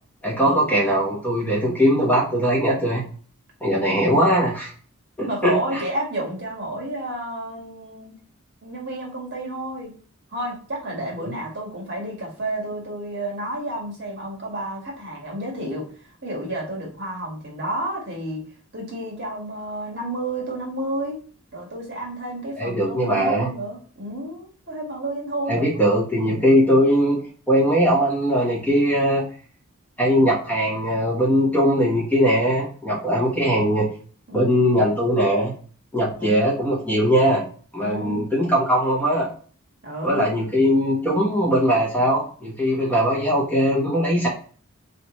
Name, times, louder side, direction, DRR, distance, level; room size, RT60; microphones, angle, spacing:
voice 1, 0.2-3.0 3.6-4.7 5.2-5.8 11.2-11.3 22.6-23.5 25.5-27.2 27.5-29.2 30.0-33.9 34.3-35.5 35.9-37.4 37.7-39.3 40.0-44.3, equal, 10° left, -5 dB, 1.2 m, -20 dB
voice 2, 5.2-8.2 8.6-9.9 10.3-15.9 16.2-18.4 18.7-21.2 21.5-25.7 34.3-34.7 36.2-36.4 37.8-38.2 39.8-40.4, right 1 dB, 50° right, -2 dB, 1.7 m, -31 dB
3.9 x 3.4 x 3.1 m, 0.42 s
head